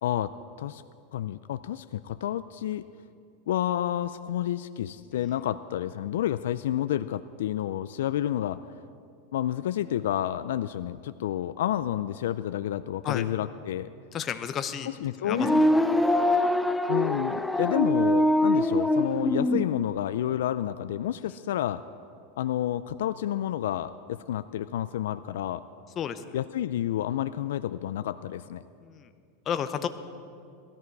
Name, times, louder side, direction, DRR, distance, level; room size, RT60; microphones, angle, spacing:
voice 1, 0.0-0.8 1.1-2.8 3.5-8.8 9.3-13.9 14.8-15.7 16.9-21.8 22.4-25.6 26.3-28.6, left 11 dB, 80° left, 13 dB, 0.3 m, -30 dB
voice 2, 14.1-14.9 15.2-15.5 26.0-26.2 28.8-29.1 29.5-29.9, left 8 dB, 30° left, 10 dB, 0.8 m, -31 dB
sound 1, 15.3-19.7, left 1 dB, 5° left, 0.5 m, -23 dB
17.5 x 13.5 x 4.7 m, 2.4 s
supercardioid pair, 140°, 0 cm